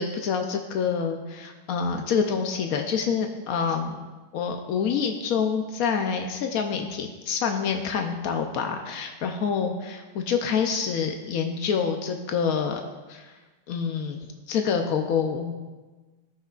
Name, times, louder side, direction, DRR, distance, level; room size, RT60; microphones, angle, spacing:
voice 1, 0.0-4.0 4.3-12.8 13.1-13.3 13.7-15.6, left 6 dB, 90° left, 4 dB, 0.7 m, -27 dB
17.0 x 5.7 x 2.4 m, 1.3 s
omnidirectional pair, 2.3 m